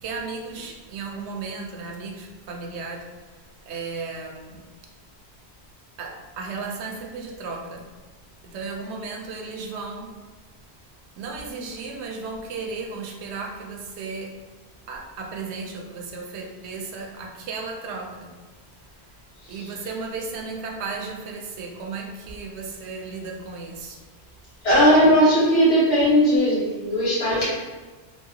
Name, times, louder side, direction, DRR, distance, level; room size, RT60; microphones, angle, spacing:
voice 1, 0.0-4.7 6.0-7.9 8.4-10.2 11.2-14.4 14.9-18.3 18.7-19.2 19.5-24.0, right 4 dB, 90° right, 2 dB, 0.9 m, -35 dB
voice 2, 19.4-19.7 24.6-27.5, equal, 90° left, -10 dB, 1.9 m, -18 dB
3.2 x 2.7 x 2.7 m, 1.3 s
omnidirectional pair, 1.1 m